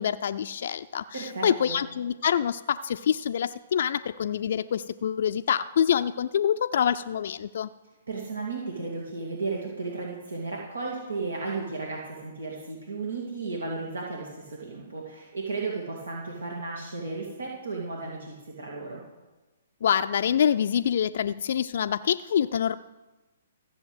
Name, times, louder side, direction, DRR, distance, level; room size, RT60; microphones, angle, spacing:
voice 1, 0.0-7.7 19.8-22.8, left 8 dB, 65° left, 10 dB, 0.4 m, -26 dB
voice 2, 1.1-1.8 8.1-19.0, right 3 dB, 85° right, -2 dB, 2.5 m, -34 dB
14.0 x 7.1 x 8.0 m, 1.2 s
hypercardioid pair, 135°, 0 cm